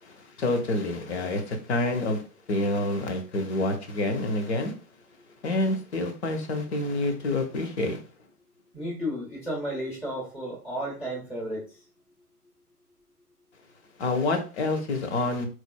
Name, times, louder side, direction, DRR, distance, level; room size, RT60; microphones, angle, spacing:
voice 1, 0.0-2.2 2.5-4.7 5.4-8.0 14.0-15.5, left 2 dB, 45° left, 0.8 m, -27 dB
voice 2, 8.7-11.6, equal, 5° left, 0.4 m, -33 dB
4.0 x 3.2 x 2.2 m
figure-of-eight pair, 110°, 46 cm